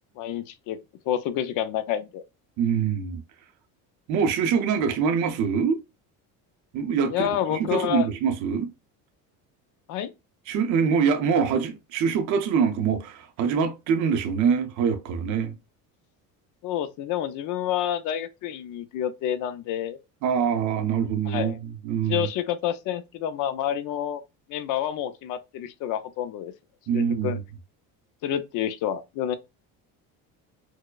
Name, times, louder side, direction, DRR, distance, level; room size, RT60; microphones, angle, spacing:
voice 1, 0.2-0.8 1.1-2.2 7.1-8.1 9.9-10.1 16.6-20.0 21.3-21.6 22.1-24.2 24.5-26.5 26.9-27.4 28.2-29.3, left 10 dB, 55° left, 0.5 m, -28 dB
voice 2, 2.6-3.2 4.1-5.8 6.7-7.1 7.5-8.7 10.5-15.5 20.2-22.3 26.9-27.4, right 6 dB, 55° right, 0.6 m, -24 dB
4.5 x 2.1 x 2.2 m
cardioid pair, 150°, 37 cm